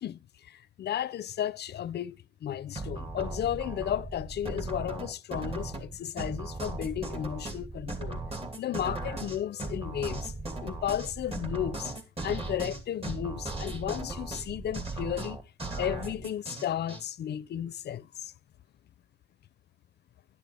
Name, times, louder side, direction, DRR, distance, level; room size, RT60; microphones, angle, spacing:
voice 1, 0.0-8.2 8.6-10.3 10.6-11.9 12.2-15.4 15.8-18.3, left 10 dB, 55° left, 0.6 m, -34 dB
sound 1, 2.7-17.0, right 2 dB, 30° right, 2.8 m, -37 dB
11.0 x 11.0 x 3.4 m
cardioid pair, 90°, 20 cm